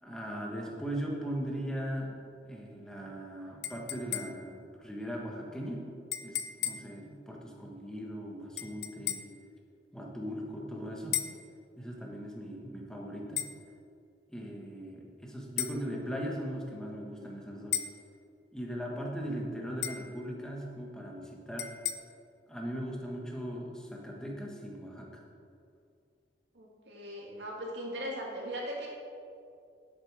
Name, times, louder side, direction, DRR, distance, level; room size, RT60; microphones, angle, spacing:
voice 1, 0.0-2.2 2.4-5.8 6.2-9.2 9.9-11.2 11.8-13.4 14.3-17.8 18.5-21.7 22.5-25.2, equal, 5° left, -2 dB, 1.4 m, -39 dB
sound 1, 3.6-4.6 6.1-7.0 8.6-9.4 11.1-11.5 13.4-13.6 15.6-15.8 17.7-18.0 19.8-20.1 21.6-21.9, left 10 dB, 75° left, 0.6 m, -35 dB
voice 2, 26.5-28.9, equal, 90° right, -2 dB, 2.2 m, -39 dB
10.5 x 8.4 x 4.9 m, 2.4 s
head